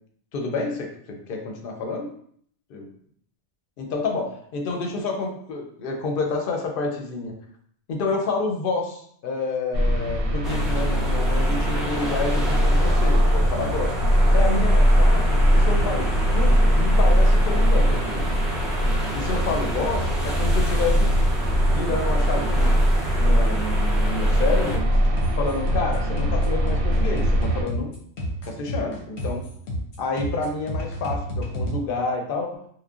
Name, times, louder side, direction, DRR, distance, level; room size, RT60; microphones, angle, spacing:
voice 1, 0.3-2.1 2.7-2.8 3.8-7.3 7.9-13.9 14.3-18.3 19.1-21.2 21.6-22.7 23.2-24.8 25.3-27.9 28.5-29.5 30.0-32.7, left 3 dB, 60° left, 2 dB, 0.7 m, -29 dB
sound 1, 9.7-27.6, equal, 65° right, 0.7 m, -20 dB
sound 2, 10.4-24.8, equal, ahead, 0.4 m, -33 dB
sound 3, 24.4-31.8, equal, 85° left, 1.0 m, -30 dB
3.0 x 2.1 x 2.3 m, 0.63 s
omnidirectional pair, 1.1 m